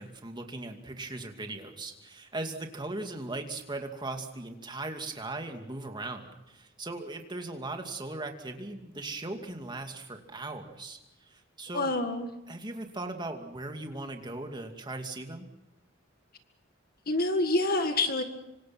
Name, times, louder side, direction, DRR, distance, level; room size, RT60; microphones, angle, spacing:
voice 1, 0.0-12.0 12.5-15.5, right 2 dB, 25° right, 4 dB, 2.5 m, -38 dB
voice 2, 11.7-12.3 17.1-18.2, left 2 dB, 50° left, 7 dB, 1.9 m, -27 dB
26.5 x 25.5 x 6.0 m, 0.92 s
head